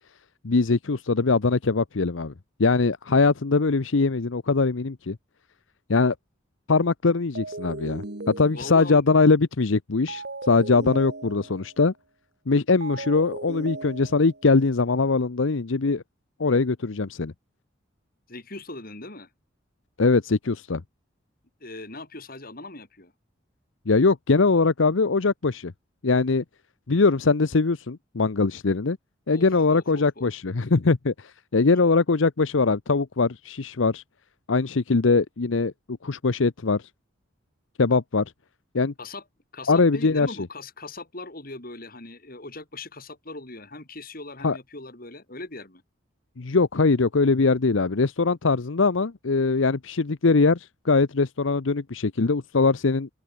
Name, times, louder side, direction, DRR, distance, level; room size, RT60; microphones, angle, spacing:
voice 1, 0.4-2.3 2.6-5.2 5.9-6.1 6.7-8.0 8.4-11.9 12.5-16.0 16.4-17.3 20.0-20.8 23.9-25.7 26.0-26.4 26.9-29.0 29.3-34.0 34.5-35.7 36.0-36.8 37.8-38.2 38.7-38.9 39.7-40.3 44.4-44.6 46.4-53.1, left 4 dB, 80° left, 0.8 m, -22 dB
sound 1, 7.4-9.0 10.1-11.8 12.8-14.5, right 2 dB, 55° right, 2.1 m, -37 dB
voice 2, 8.5-9.0 18.3-19.3 21.6-23.1 29.3-30.3 39.0-39.2 39.5-45.8, left 2 dB, 50° left, 4.0 m, -40 dB
open air
head